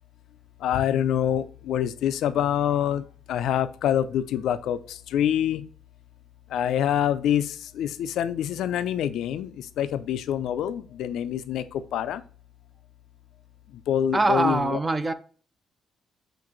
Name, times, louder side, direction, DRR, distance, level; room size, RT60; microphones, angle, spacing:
voice 1, 0.6-5.6 6.5-12.2 13.9-14.8, left 10 dB, 80° left, 0.3 m, -26 dB
voice 2, 14.1-15.1, right 2 dB, 20° right, 0.4 m, -23 dB
6.1 x 2.5 x 3.0 m
cardioid pair, 90°, 0 cm